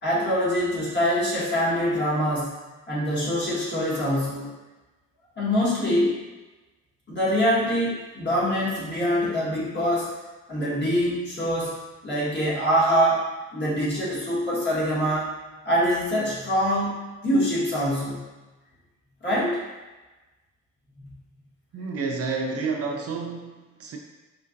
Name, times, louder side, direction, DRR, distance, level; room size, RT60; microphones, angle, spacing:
voice 1, 0.0-2.5 2.9-4.5 5.4-6.2 7.1-10.1 10.5-11.7 12.0-13.2 13.5-15.3 15.6-18.2 19.2-19.6, equal, 35° left, -7 dB, 1.5 m, -24 dB
voice 2, 21.7-24.0, right 4 dB, 50° right, 2 dB, 0.5 m, -30 dB
4.4 x 2.4 x 2.6 m, 1.2 s
cardioid pair, 90°, 30 cm